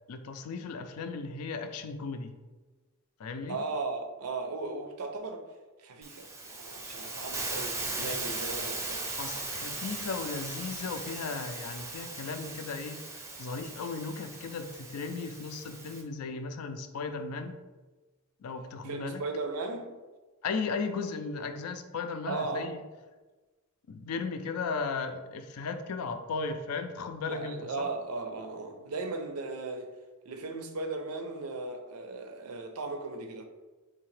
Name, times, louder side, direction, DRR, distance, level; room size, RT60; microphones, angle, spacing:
voice 1, 0.1-2.3 3.2-3.6 8.0-8.2 9.0-13.0 13.4-17.6 18.4-19.2 20.4-22.8 23.9-27.9, left 4 dB, 85° left, 0.4 m, -36 dB
voice 2, 3.5-5.5 5.8-9.1 18.8-19.9 22.3-22.7 27.3-29.9 30.3-33.4, right 3 dB, 90° right, 0.5 m, -37 dB
Hiss, 6.0-16.0, right 3 dB, 15° right, 0.4 m, -38 dB
3.8 x 2.8 x 3.2 m
head